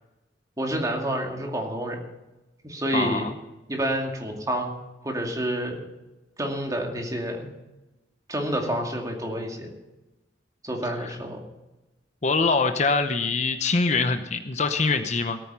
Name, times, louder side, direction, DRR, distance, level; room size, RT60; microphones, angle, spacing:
voice 1, 0.6-2.0 2.6-3.2 3.7-4.8 5.0-5.8 6.4-7.5 8.3-9.7 10.6-11.4, right 1 dB, 20° right, 1 dB, 2.4 m, -28 dB
voice 2, 2.9-3.3 11.0-11.2 12.2-15.4, left 4 dB, 40° left, 9 dB, 0.8 m, -24 dB
17.5 x 9.3 x 5.6 m, 1.0 s
head